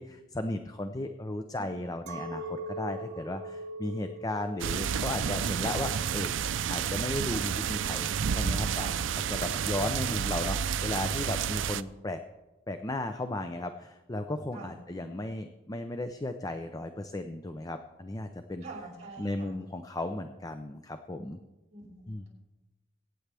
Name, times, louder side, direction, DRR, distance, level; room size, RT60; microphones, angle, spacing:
voice 1, 0.0-8.9 9.3-12.2 12.7-18.6 19.2-21.4 22.1-22.2, left 2 dB, 20° left, 8 dB, 0.6 m, -35 dB
voice 2, 1.5-2.1 8.7-9.0 14.5-14.8 18.6-19.6 21.7-22.3, right 3 dB, 40° right, -5 dB, 5.8 m, -46 dB
Chink clink, 2.1-7.5, right 1 dB, 60° right, 1.1 m, -42 dB
sound 1, 4.6-11.8, right 7 dB, 85° right, 0.5 m, -30 dB
23.0 x 9.4 x 3.4 m, 1.1 s
head